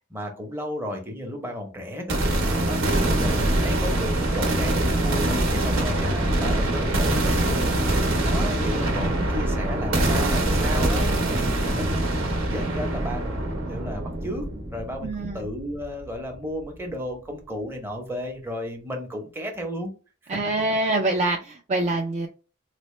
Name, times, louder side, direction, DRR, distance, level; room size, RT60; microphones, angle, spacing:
voice 1, 0.1-2.2 2.6-14.4 14.7-19.9, equal, 10° right, 0.8 m, -33 dB
sound 1, 2.1-16.0, right 1 dB, 75° right, 1.0 m, -24 dB
voice 2, 15.0-15.4 20.3-22.3, right 2 dB, 35° right, 0.3 m, -25 dB
4.1 x 2.1 x 3.1 m
head